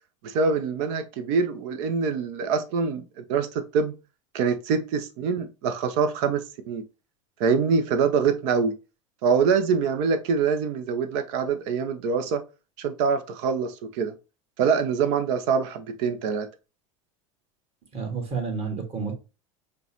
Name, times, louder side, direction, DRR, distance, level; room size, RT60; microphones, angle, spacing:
voice 1, 0.2-4.0 4.3-6.8 7.4-8.7 9.2-12.4 12.8-14.1 14.6-16.5, right 5 dB, 60° right, 0.7 m, -24 dB
voice 2, 17.9-19.1, right 5 dB, 35° right, 1.7 m, -30 dB
5.0 x 2.3 x 2.9 m
hypercardioid pair, 90°, 17 cm